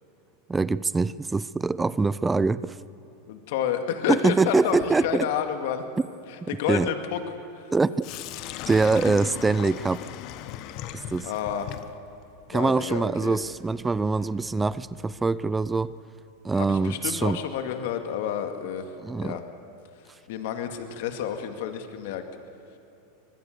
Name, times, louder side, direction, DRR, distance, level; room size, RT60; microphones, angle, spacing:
voice 1, 0.5-2.8 4.1-5.2 6.4-6.9 7.7-8.1 8.7-10.1 10.9-11.3 12.5-15.9 16.4-17.4 19.0-19.3, right 3 dB, 10° right, 18 dB, 0.5 m, -24 dB
voice 2, 3.3-5.8 6.3-7.7 11.2-11.7 12.5-13.4 16.5-18.9 19.2-19.4 20.0-22.2, left 8 dB, 70° left, 7 dB, 2.2 m, -30 dB
Sink (filling or washing), 8.0-15.9, left 12 dB, 50° left, 1.2 m, -40 dB
24.5 x 20.5 x 6.8 m, 3.0 s
supercardioid pair, 125°, 0 cm